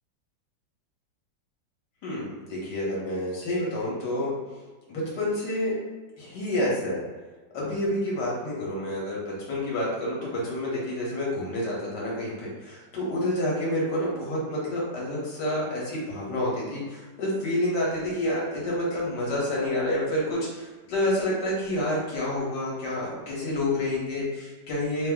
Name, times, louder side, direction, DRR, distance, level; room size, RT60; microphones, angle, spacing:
voice 1, 2.0-4.3 4.9-5.7 6.2-7.0 7.5-25.1, left 1 dB, 70° left, -5 dB, 1.6 m, -28 dB
3.5 x 2.0 x 3.5 m, 1.3 s
omnidirectional pair, 2.0 m